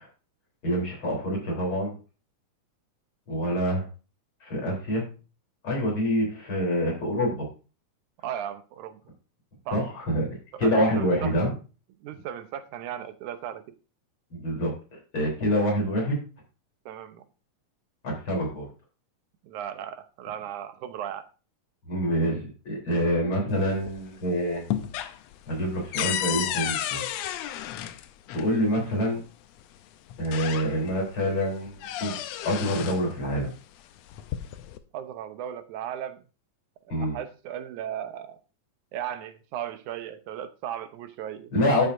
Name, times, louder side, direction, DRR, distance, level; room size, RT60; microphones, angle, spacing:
voice 1, 0.6-1.9 3.3-3.8 4.4-5.1 5.6-7.4 9.7-10.3 10.6-11.5 14.3-14.7 15.1-16.2 18.0-18.7 21.9-24.7 25.5-27.1 28.3-29.2 30.2-32.2 32.4-33.5 36.9-37.2 41.5-41.9, equal, 40° left, 4.3 m, -26 dB
voice 2, 8.2-9.0 9.7-9.8 10.5-11.4 12.0-13.6 16.9-17.2 19.4-21.3 34.9-36.2 36.9-38.4 38.9-41.5, right 10 dB, 80° right, 2.3 m, -36 dB
sound 1, 23.5-24.2 24.5-28.5 29.6-29.7 30.1-31.0 31.4-33.1 34.0-34.8, left 11 dB, 75° left, 1.6 m, -32 dB
12.5 x 7.4 x 2.6 m
omnidirectional pair, 3.5 m